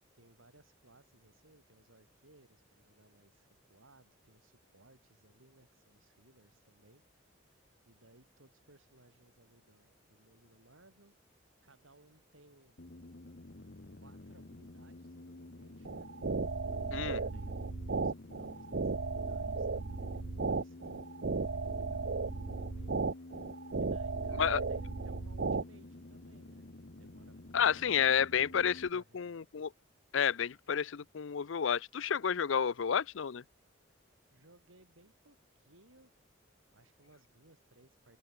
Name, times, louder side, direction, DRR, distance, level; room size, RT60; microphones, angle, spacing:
voice 1, 0.1-7.0 7.8-11.1 11.6-12.8 14.0-16.1 16.7-23.2 23.8-26.7 27.0-28.6 29.0-29.4 34.3-36.1 36.7-38.2, right 2 dB, 90° right, 5.2 m, -64 dB
sound 1, 12.8-28.9, left 2 dB, 55° left, 1.1 m, -50 dB
sound 2, 15.8-25.6, right 4 dB, 55° right, 0.6 m, -35 dB
voice 2, 16.9-17.2 24.4-24.6 27.5-29.7 30.1-33.4, left 7 dB, 75° left, 0.5 m, -30 dB
head